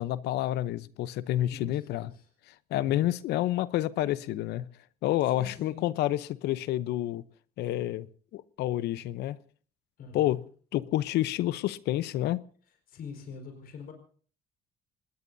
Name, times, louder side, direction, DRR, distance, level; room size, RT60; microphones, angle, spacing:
voice 1, 0.0-2.1 2.7-4.7 5.0-7.2 7.6-8.1 8.3-9.4 10.1-10.4 10.7-12.4, left 14 dB, 80° left, 16 dB, 0.8 m, -29 dB
voice 2, 1.5-2.2 2.8-3.1 5.3-5.9 10.0-10.4 12.9-13.9, left 5 dB, 60° left, 4 dB, 4.8 m, -44 dB
26.5 x 20.0 x 2.7 m, 0.43 s
cardioid pair, 110°, 17 cm